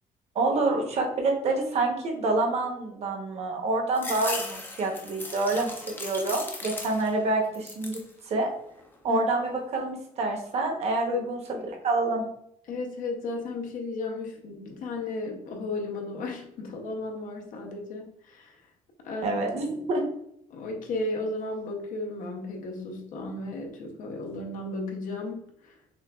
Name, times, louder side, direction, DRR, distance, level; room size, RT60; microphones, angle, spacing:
voice 1, 0.3-8.0 8.2-8.5 9.0-12.2 19.2-20.0, right 2 dB, 45° right, 2 dB, 0.8 m, -27 dB
sound 1, 3.9-7.2 7.5-8.1 8.6-9.3, left 2 dB, 15° left, 0.4 m, -37 dB
voice 2, 12.7-18.6 19.0-19.5 20.5-25.8, left 2 dB, 65° left, 2 dB, 0.7 m, -34 dB
6.0 x 2.3 x 2.2 m, 0.74 s
cardioid pair, 175°, 15 cm